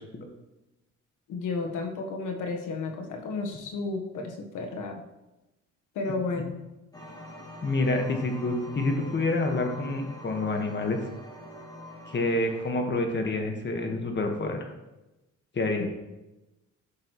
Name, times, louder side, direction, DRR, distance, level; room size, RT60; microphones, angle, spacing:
voice 1, 1.3-4.9 5.9-6.5 15.8-15.9, left 3 dB, 85° left, 2 dB, 1.4 m, -32 dB
sound 1, 6.9-12.7, left 1 dB, 10° left, 2.9 m, -45 dB
voice 2, 7.6-11.0 12.1-14.7 15.5-15.9, left 2 dB, 35° left, 3 dB, 1.6 m, -28 dB
11.5 x 6.2 x 3.2 m, 1.0 s
cardioid pair, 90°, 30 cm